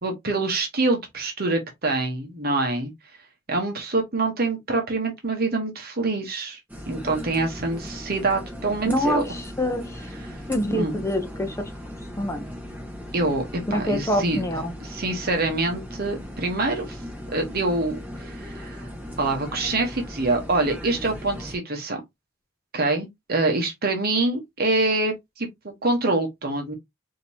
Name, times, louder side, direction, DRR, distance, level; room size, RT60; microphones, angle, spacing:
voice 1, 0.0-2.9 3.5-6.6 6.9-9.2 10.3-10.4 10.7-11.0 13.1-13.4 13.7-14.4 14.8-17.0 17.3-18.9 19.2-22.0 22.7-26.7, right 2 dB, 45° right, 1.0 m, -25 dB
sound 1, 6.7-21.6, equal, 10° right, 1.3 m, -38 dB
voice 2, 8.8-10.1 10.5-11.7 12.2-12.5 13.7-14.7, equal, 15° left, 0.7 m, -26 dB
5.1 x 2.8 x 2.7 m
head